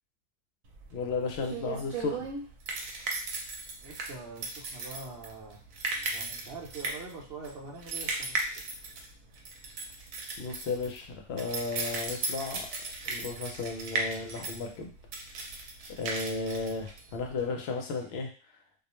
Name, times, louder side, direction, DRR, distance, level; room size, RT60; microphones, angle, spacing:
sound 1, 0.7-17.5, right 3 dB, 90° right, 1.0 m, -36 dB
voice 1, 0.9-2.3 10.4-12.7 13.0-14.9 16.0-18.3, left 4 dB, 65° left, 2 dB, 0.7 m, -34 dB
voice 2, 3.8-5.6 6.1-8.6, right 4 dB, 55° right, -1 dB, 0.8 m, -44 dB
2.4 x 2.0 x 2.9 m, 0.39 s
omnidirectional pair, 1.4 m